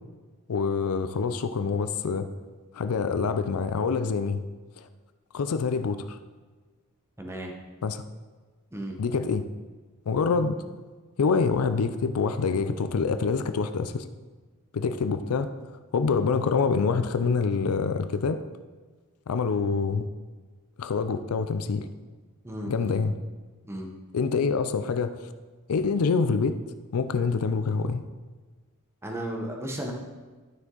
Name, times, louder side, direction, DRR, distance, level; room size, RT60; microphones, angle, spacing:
voice 1, 0.5-2.3 2.7-4.4 4.8-4.9 5.3-6.2 7.8-8.0 9.0-9.5 10.1-10.5 11.2-14.1 14.7-15.5 15.9-18.4 19.3-20.1 20.8-21.9 22.7-23.1 24.1-25.3 25.7-26.6 26.9-28.0, left 5 dB, 85° left, 10 dB, 0.5 m, -26 dB
voice 2, 7.2-7.5 8.7-9.0 22.4-23.0 23.6-23.9 29.0-29.9, right 1 dB, 10° right, 1 dB, 1.0 m, -34 dB
11.5 x 6.2 x 3.9 m, 1.4 s
head